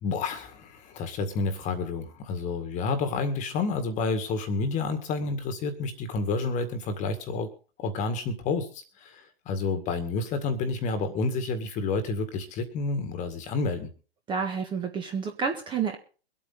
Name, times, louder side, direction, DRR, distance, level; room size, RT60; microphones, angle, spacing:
voice 1, 0.0-7.5 7.8-13.9, left 4 dB, 25° left, 10 dB, 1.9 m, -29 dB
voice 2, 14.3-16.0, right 6 dB, 15° right, 4 dB, 1.4 m, -29 dB
23.5 x 8.6 x 4.0 m, 0.38 s
hypercardioid pair, 130°, 32 cm